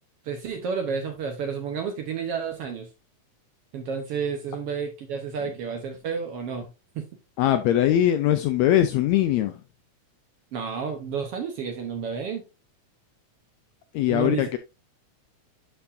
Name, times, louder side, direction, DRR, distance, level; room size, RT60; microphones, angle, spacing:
voice 1, 0.3-2.9 3.7-6.7 7.0-7.1 10.5-12.4 14.1-14.5, right 6 dB, 65° right, 1.6 m, -31 dB
voice 2, 7.4-9.5 13.9-14.6, left 12 dB, 80° left, 1.6 m, -21 dB
11.5 x 4.4 x 2.6 m
omnidirectional pair, 3.6 m